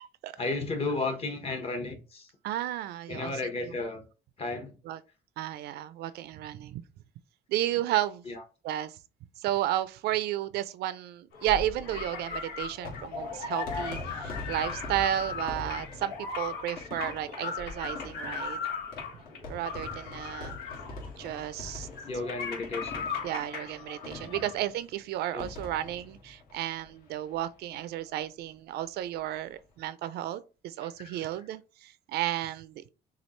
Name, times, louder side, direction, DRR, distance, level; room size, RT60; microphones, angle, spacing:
voice 1, 0.4-2.3 3.1-4.0 4.4-4.7 8.3-8.4 22.1-23.0 24.2-24.3 25.3-25.5 31.0-31.3, left 3 dB, 35° left, 1.2 m, -33 dB
voice 2, 2.4-3.7 4.9-5.0 5.4-6.8 7.5-8.2 8.6-8.9 9.4-18.6 19.5-20.5 21.2-21.9 23.2-32.8, right 13 dB, 75° right, 0.5 m, -33 dB
sound 1, 11.3-24.5, left 5 dB, 85° left, 1.5 m, -38 dB
sound 2, 11.3-27.4 27.7-27.8 28.0-28.1 29.3-29.6, left 3 dB, 60° left, 1.9 m, -44 dB
6.3 x 2.4 x 3.1 m
cardioid pair, 110°, 17 cm